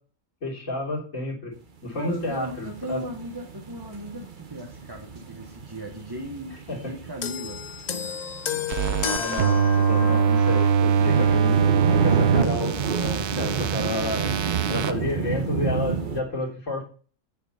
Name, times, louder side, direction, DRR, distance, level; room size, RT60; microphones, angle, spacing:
voice 1, 0.4-1.5 1.8-3.0 6.7-6.9 9.2-14.3 14.7-16.8, left 2 dB, 55° left, -4 dB, 3.8 m, -31 dB
voice 2, 2.0-7.6 9.9-10.3, right 1 dB, 15° right, 1 dB, 1.0 m, -37 dB
sound 1, 2.0-16.2, right 6 dB, 35° right, 1.1 m, -30 dB
sound 2, 7.2-10.8 11.7-11.9, left 8 dB, 80° left, 0.3 m, -32 dB
sound 3, 8.7-14.9, right 6 dB, 90° right, 1.3 m, -22 dB
9.0 x 7.1 x 5.6 m, 0.40 s
omnidirectional pair, 1.6 m